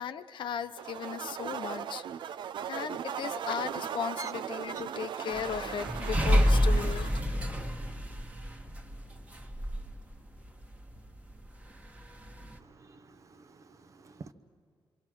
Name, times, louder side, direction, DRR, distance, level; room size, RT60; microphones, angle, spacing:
voice 1, 0.0-2.0 2.7-7.7, left 8 dB, 75° left, 0.8 m, -37 dB
sound 1, 0.8-7.2, right 8 dB, 70° right, 0.5 m, -38 dB
sound 2, 5.3-10.0 10.4-10.5 10.7-11.0 11.3-11.4 12.3-12.6, equal, 15° right, 1.3 m, -28 dB
voice 2, 12.6-14.3, right 3 dB, 40° right, 0.9 m, -49 dB
26.5 x 25.0 x 6.2 m
wide cardioid pair, 175°, 8 cm